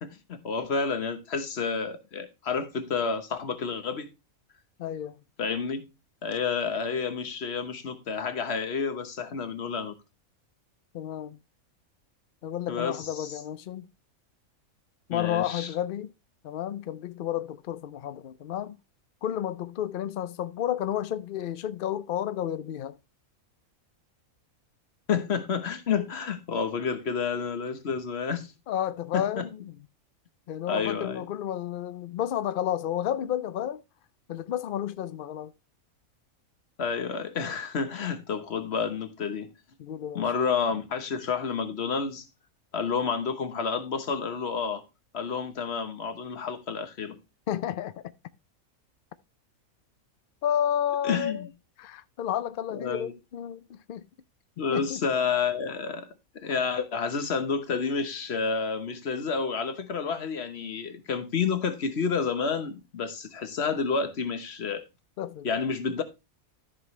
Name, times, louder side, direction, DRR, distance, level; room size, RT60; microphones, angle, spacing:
voice 1, 0.0-4.1 5.4-5.8 6.2-10.0 12.7-13.3 15.1-15.7 25.1-28.5 29.1-29.5 30.7-31.2 36.8-39.5 40.1-42.2 42.7-44.8 45.1-47.2 51.0-51.4 52.7-53.1 54.6-64.8 65.4-66.0, left 5 dB, 50° left, 1.2 m, -30 dB
voice 2, 4.8-5.2 10.9-11.4 12.4-13.9 15.1-16.1 16.4-18.8 19.2-23.0 28.7-29.8 30.5-33.8 34.3-35.5 39.8-40.2 47.5-48.0 50.4-51.5 51.8-54.0 54.7-55.0 65.2-65.5, left 10 dB, 80° left, 0.4 m, -31 dB
13.5 x 5.5 x 3.1 m
omnidirectional pair, 1.5 m